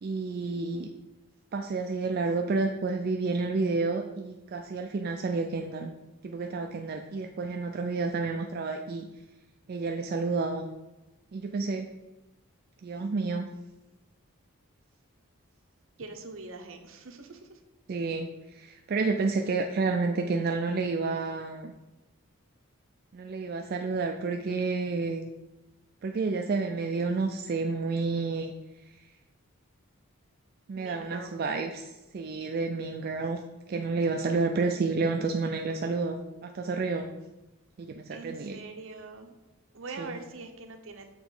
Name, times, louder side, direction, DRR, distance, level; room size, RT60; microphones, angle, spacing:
voice 1, 0.0-0.9 1.5-5.9 6.2-9.1 9.7-10.7 11.3-11.9 12.8-13.5 17.9-21.7 23.1-25.3 26.0-28.5 30.7-33.4 33.7-37.1 37.8-38.6 40.0-40.2, right 3 dB, 45° right, 4 dB, 0.3 m, -30 dB
voice 2, 16.0-17.6 30.8-31.3 38.1-39.3 39.7-41.1, right 3 dB, 60° right, 5 dB, 0.7 m, -43 dB
7.0 x 3.0 x 5.4 m, 1.0 s
head